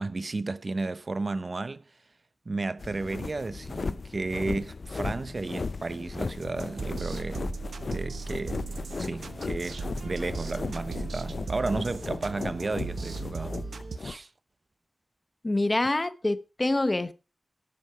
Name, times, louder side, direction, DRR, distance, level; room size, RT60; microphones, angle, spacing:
voice 1, 0.0-1.8 2.5-7.5 7.9-13.6 14.0-14.3, right 3 dB, 50° right, 0.7 m, -33 dB
sound 1, 2.8-14.2, left 4 dB, 65° left, 0.5 m, -36 dB
sound 2, 6.4-14.0, right 4 dB, 85° right, 1.0 m, -37 dB
voice 2, 15.4-17.1, left 2 dB, 30° left, 0.9 m, -26 dB
11.0 x 8.3 x 4.7 m
wide cardioid pair, 60°, 0 cm